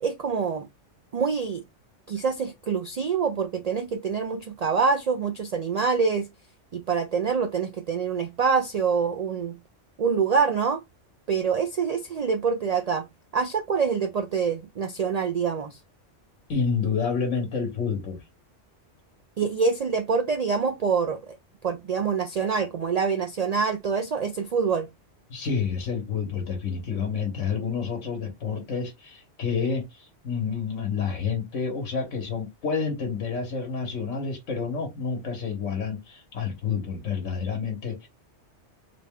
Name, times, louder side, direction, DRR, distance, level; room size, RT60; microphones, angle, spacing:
voice 1, 0.0-0.7 1.1-1.6 2.1-6.3 6.7-9.6 10.0-10.8 11.3-13.0 13.3-15.8 19.4-21.4 21.6-24.9, right 5 dB, 80° right, 0.3 m, -25 dB
voice 2, 16.5-18.2 25.3-38.1, left 5 dB, 90° left, 1.4 m, -29 dB
3.9 x 2.2 x 3.5 m
omnidirectional pair, 1.2 m